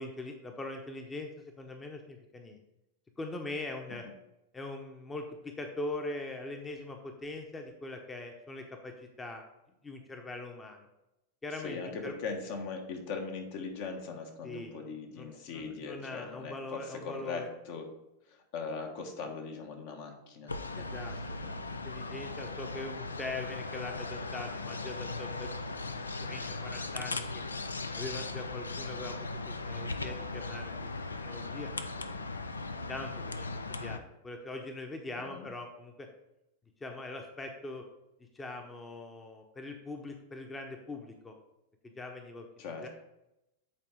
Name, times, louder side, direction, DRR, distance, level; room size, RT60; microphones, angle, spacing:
voice 1, 0.0-2.6 3.2-4.0 4.5-9.4 9.8-10.9 11.4-12.1 14.4-14.7 15.2-17.5 20.7-21.6 21.8-25.5 26.2-27.4 27.9-30.7 31.2-31.7 32.0-32.1 32.9-36.1 36.8-37.8 38.3-41.3 42.0-42.9, left 2 dB, 15° left, 4 dB, 0.8 m, -42 dB
voice 2, 11.5-17.9 18.3-21.1 35.2-35.5 42.6-42.9, left 4 dB, 55° left, 3 dB, 1.2 m, -40 dB
sound 1, 20.5-34.0, left 3 dB, 85° left, 0.4 m, -38 dB
8.4 x 4.3 x 3.5 m, 0.90 s
figure-of-eight pair, 90°, 0 cm